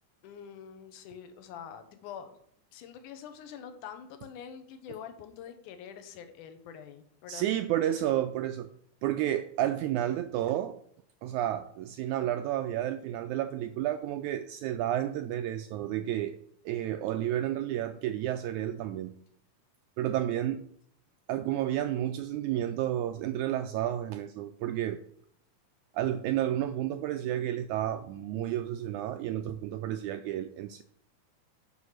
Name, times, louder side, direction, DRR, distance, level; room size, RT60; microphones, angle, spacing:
voice 1, 0.2-2.3 2.7-7.4 20.4-20.6, left 8 dB, 75° left, 8 dB, 2.4 m, -45 dB
voice 2, 7.3-8.7 9.0-10.8 11.2-16.4 16.6-19.1 20.0-20.6 21.3-25.0 25.9-30.8, right 12 dB, 85° right, 8 dB, 1.7 m, -31 dB
8.0 x 5.4 x 6.5 m, 0.66 s
omnidirectional pair, 3.8 m